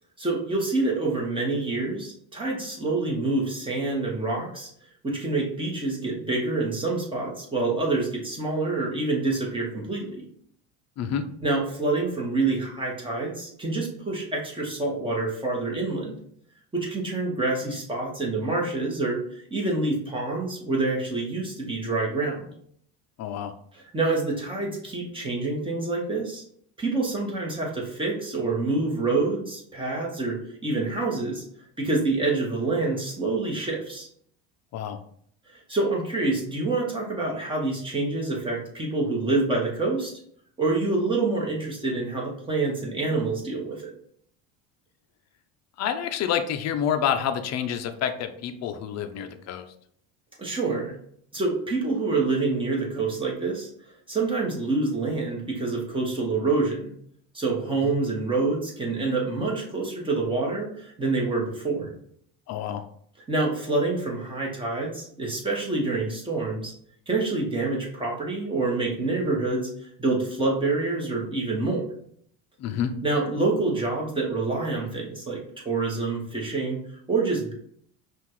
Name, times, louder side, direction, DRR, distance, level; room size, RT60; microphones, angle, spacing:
voice 1, 0.2-4.7 5.0-10.2 11.4-16.2 16.7-22.5 23.7-26.4 26.8-30.4 30.6-31.4 31.8-34.1 35.7-40.1 40.6-43.9 50.4-50.9 51.3-53.7 54.1-56.9 57.3-61.9 63.3-66.7 67.1-69.7 70.0-71.8 73.0-76.8 77.1-77.5, right 3 dB, 15° right, -2 dB, 1.4 m, -27 dB
voice 2, 23.2-23.5 34.7-35.0 45.8-49.6 57.8-57.9 62.5-62.8 72.6-72.9, left 8 dB, 45° left, 8 dB, 0.6 m, -28 dB
5.6 x 2.5 x 3.1 m, 0.64 s
cardioid pair, 115°, 36 cm